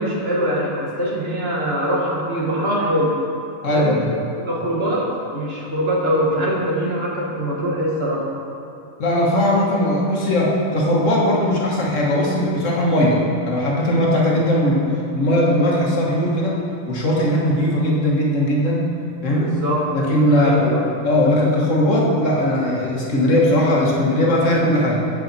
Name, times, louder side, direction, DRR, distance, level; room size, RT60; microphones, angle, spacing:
voice 1, 0.0-3.2 3.7-4.0 4.5-8.3 19.3-19.8 20.4-21.0, equal, 50° right, -4 dB, 1.5 m, -22 dB
voice 2, 3.6-4.1 9.0-14.8 15.1-16.6 16.9-19.0 19.2-19.6 19.9-20.7 21.0-25.0, left 1 dB, 65° left, -3 dB, 1.6 m, -19 dB
8.3 x 8.2 x 4.0 m, 2.6 s
omnidirectional pair, 1.4 m